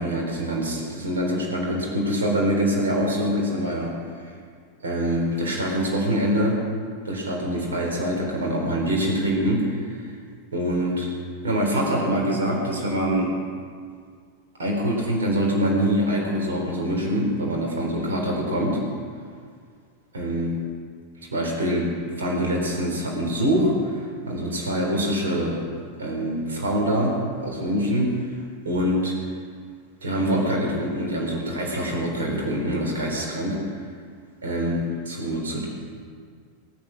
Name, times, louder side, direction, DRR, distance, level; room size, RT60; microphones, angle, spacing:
voice 1, 0.0-4.0 4.2-4.4 4.8-6.6 7.0-10.1 10.5-11.1 11.4-13.4 14.6-18.8 20.1-20.6 21.3-25.6 26.0-28.4 28.6-29.2 30.0-33.6 34.4-35.7, equal, 65° right, -1 dB, 3.8 m, -24 dB
18.5 x 9.5 x 6.4 m, 2.1 s
figure-of-eight pair, 90°, 0 cm